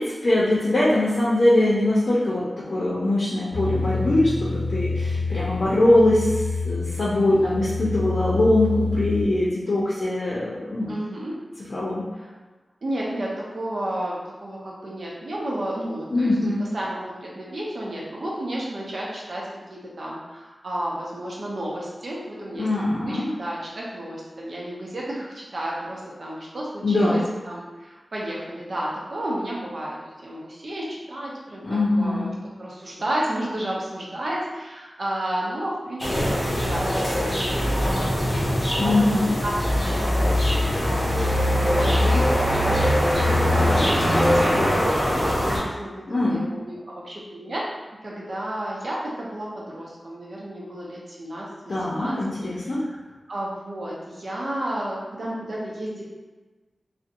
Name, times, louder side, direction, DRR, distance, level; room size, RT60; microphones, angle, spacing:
voice 1, 0.0-10.9 11.7-12.0 16.1-16.6 22.5-23.3 26.8-27.2 31.6-32.3 38.8-39.3 46.1-46.4 51.7-52.8, left 1 dB, 55° left, -8 dB, 0.5 m, -22 dB
sound 1, 3.5-9.2, left 3 dB, 5° left, 1.3 m, -28 dB
voice 2, 10.9-11.4 12.1-12.3 12.8-22.7 23.0-27.2 27.5-30.0 30.2-32.3 32.6-38.6 38.8-39.5 39.8-47.7 48.0-52.2 52.6-53.0 53.3-56.0, right 1 dB, 65° right, -5 dB, 0.6 m, -32 dB
sound 2, 36.0-45.6, equal, 25° left, 0.8 m, -22 dB
2.6 x 2.1 x 2.5 m, 1.3 s
wide cardioid pair, 85°, 0 cm